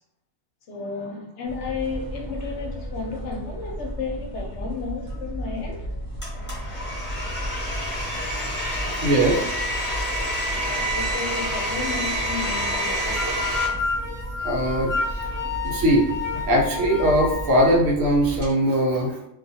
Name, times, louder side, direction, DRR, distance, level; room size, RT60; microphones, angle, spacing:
voice 1, 0.7-5.9 10.5-13.5, left 4 dB, 70° left, 0.8 m, -33 dB
sound 1, 1.5-18.5, equal, 50° right, 0.9 m, -34 dB
Domestic sounds home sounds, 6.2-13.7, equal, 10° left, 0.7 m, -28 dB
voice 2, 9.0-9.4 14.4-15.2 15.6-16.1 16.3-19.3, right 1 dB, 90° right, 1.1 m, -21 dB
sound 2, 12.5-17.8, left 4 dB, 45° left, 0.3 m, -30 dB
2.4 x 2.3 x 2.7 m
omnidirectional pair, 1.3 m